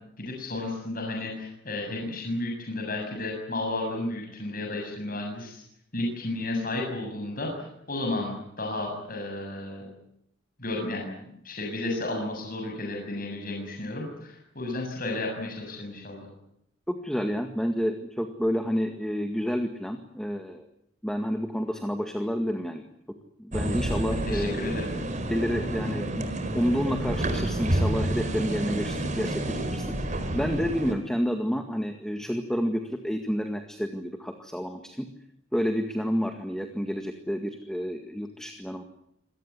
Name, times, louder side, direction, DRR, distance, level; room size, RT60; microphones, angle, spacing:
voice 1, 0.2-5.6 5.9-9.8 10.6-11.1 11.4-16.3 24.2-24.9, left 2 dB, 50° left, 1 dB, 7.3 m, -32 dB
voice 2, 16.9-20.7 21.0-22.8 23.4-24.7 25.3-26.3 26.5-35.1 35.5-38.8, equal, 5° left, 5 dB, 1.9 m, -29 dB
sound 1, 23.5-30.9, right 1 dB, 40° right, 4.4 m, -29 dB
26.5 x 18.5 x 9.6 m, 0.75 s
head